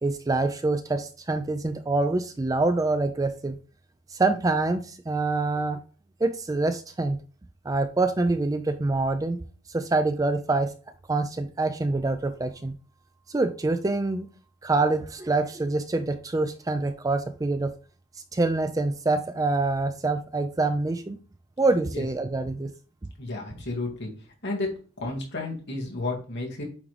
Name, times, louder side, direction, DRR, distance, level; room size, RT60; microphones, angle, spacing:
voice 1, 0.0-3.6 4.1-5.8 6.2-7.2 7.7-9.4 9.7-10.7 11.1-12.7 13.3-14.3 14.6-17.7 18.3-21.2 21.6-22.7, right 3 dB, 15° right, 9 dB, 0.3 m, -25 dB
voice 2, 23.2-24.1 24.4-24.7 25.0-26.6, left 2 dB, 55° left, -1 dB, 2.2 m, -32 dB
8.5 x 3.7 x 3.3 m, 0.39 s
head